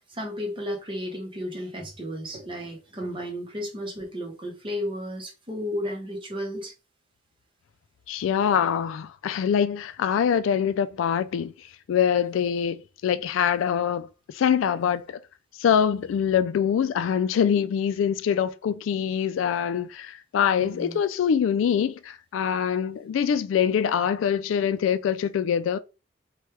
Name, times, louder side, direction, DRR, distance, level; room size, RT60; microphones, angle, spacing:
voice 1, 0.0-6.7 20.6-21.0, equal, 25° right, 0.8 m, -33 dB
voice 2, 8.1-11.5 11.9-15.2 15.6-25.8, left 8 dB, 85° left, 0.3 m, -24 dB
3.0 x 2.3 x 3.2 m
head